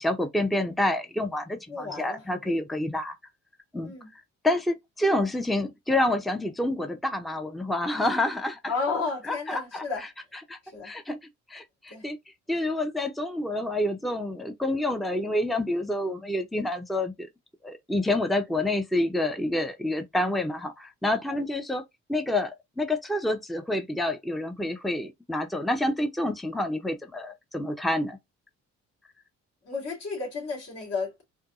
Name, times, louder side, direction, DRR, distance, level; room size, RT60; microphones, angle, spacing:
voice 1, 0.0-3.1 3.7-3.9 4.4-8.6 9.3-10.1 10.5-10.6 10.8-11.2 11.5-12.2 12.5-17.3 17.6-21.8 22.1-28.2, left 1 dB, ahead, 0.6 m, -28 dB
voice 2, 1.7-2.5 3.8-4.1 8.6-10.0 10.6-10.9 11.9-12.1 29.6-31.2, left 4 dB, 55° left, 2.6 m, -33 dB
4.5 x 2.2 x 2.4 m
cardioid pair, 90°, 30 cm